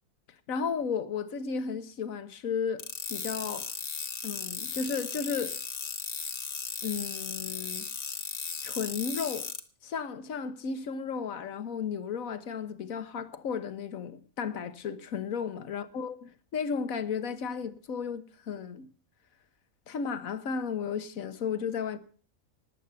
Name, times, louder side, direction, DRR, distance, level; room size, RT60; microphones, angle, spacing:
voice 1, 0.5-2.8 3.1-3.6 4.2-5.6 6.8-7.9 8.6-9.5 9.8-18.9 19.9-22.0, left 6 dB, 70° left, 1.5 m, -34 dB
sound 1, 2.8-9.6, left 5 dB, 50° left, 1.4 m, -36 dB
19.0 x 8.3 x 6.9 m
omnidirectional pair, 1.5 m